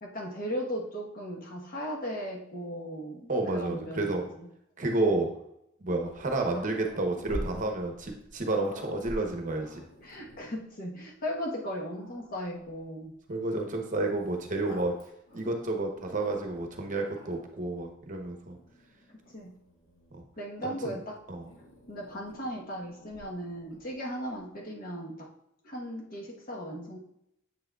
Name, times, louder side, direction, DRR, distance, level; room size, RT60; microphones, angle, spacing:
voice 1, 0.0-4.5 10.0-13.1 19.3-19.6 20.4-21.2 21.9-25.3 25.6-27.0, equal, 45° left, -1 dB, 1.1 m, -37 dB
voice 2, 3.3-4.3 4.8-5.3 5.8-9.8 13.3-14.9 15.3-18.6 20.1-20.2 20.6-21.0 21.3-21.5, right 2 dB, 40° right, 3 dB, 0.8 m, -30 dB
Growling, 6.0-10.6 11.3-11.4 11.8-12.8 13.9-16.7 17.1-17.6 18.5-20.3 21.4-23.9, equal, 90° left, 1.9 m, -47 dB
7.5 x 6.2 x 2.3 m, 0.78 s
head